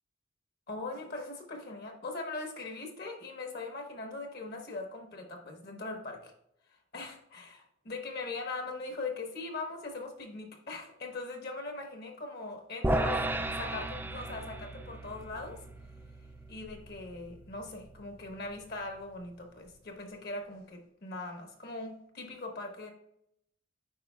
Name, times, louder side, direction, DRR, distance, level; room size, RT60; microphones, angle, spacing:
voice 1, 0.7-6.3 6.9-13.2 13.6-15.6 16.5-22.9, left 3 dB, 55° left, 3 dB, 1.1 m, -40 dB
sound 1, 12.8-19.2, right 1 dB, 10° right, 0.4 m, -36 dB
8.5 x 4.9 x 2.3 m, 0.74 s
head